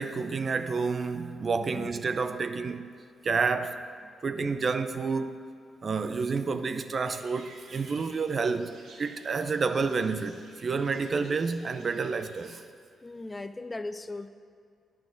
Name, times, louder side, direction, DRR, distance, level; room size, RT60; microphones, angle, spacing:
voice 1, 0.0-2.9 3.2-3.8 4.2-5.4 5.8-12.6, right 4 dB, 50° right, 0.6 m, -29 dB
sound 1, 7.0-12.5, right 3 dB, 70° right, 1.4 m, -54 dB
voice 2, 13.0-14.3, left 2 dB, 25° left, 0.6 m, -38 dB
9.6 x 6.0 x 7.7 m
hypercardioid pair, 40°, 0 cm